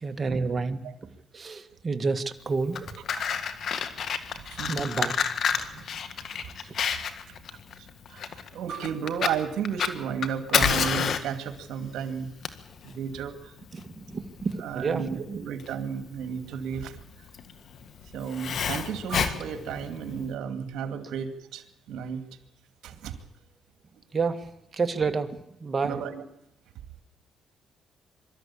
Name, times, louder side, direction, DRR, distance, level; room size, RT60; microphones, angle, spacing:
voice 1, 0.0-0.8 1.3-2.8 4.7-5.1 13.7-15.4 24.1-26.0, right 4 dB, 35° right, 8 dB, 1.8 m, -29 dB
Fire, 2.5-20.3, left 7 dB, 60° left, 1.8 m, -30 dB
voice 2, 3.2-3.6 4.3-5.0 5.6-5.8 6.2-6.3 6.6-6.7 7.8-12.3 12.8-13.5 14.6-17.0 18.1-22.2 22.8-23.2 25.8-26.2, right 7 dB, 80° right, 8 dB, 2.4 m, -33 dB
24.0 x 13.0 x 8.6 m, 0.87 s
cardioid pair, 90°, 0 cm